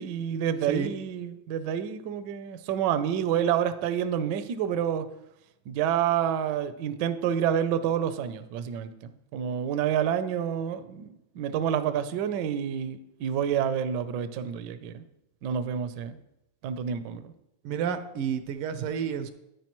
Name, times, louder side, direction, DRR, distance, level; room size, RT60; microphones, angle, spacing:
voice 1, 0.0-5.0 5.7-15.0 15.4-16.2 16.6-17.3, right 9 dB, 70° right, 11 dB, 1.0 m, -28 dB
voice 2, 17.6-19.3, right 7 dB, 85° right, 10 dB, 1.6 m, -30 dB
10.5 x 9.2 x 3.0 m, 0.85 s
omnidirectional pair, 2.4 m